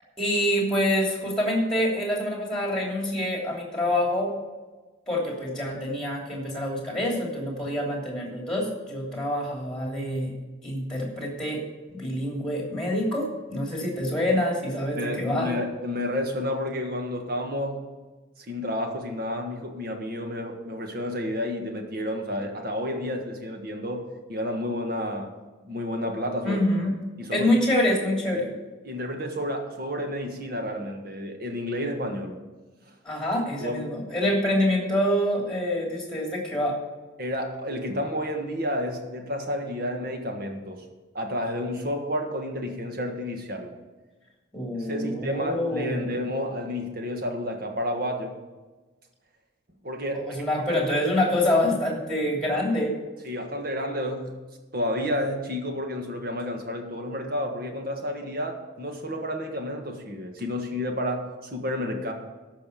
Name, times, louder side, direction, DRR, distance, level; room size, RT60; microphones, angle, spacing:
voice 1, 0.2-4.3 5.1-10.3 10.6-11.6 11.9-15.6 26.4-26.9 27.3-28.5 33.0-36.8 44.5-46.2 50.1-52.9, left 1 dB, 5° left, -1 dB, 2.9 m, -26 dB
voice 2, 15.0-17.9 18.4-25.3 25.6-26.6 27.2-27.6 28.8-32.4 32.9-33.0 33.6-33.8 37.2-40.8 41.1-43.7 44.8-48.4 49.8-50.3 50.7-50.8 53.2-54.3 54.7-62.1, left 1 dB, 50° right, 3 dB, 1.6 m, -30 dB
13.5 x 5.6 x 6.9 m, 1.3 s
head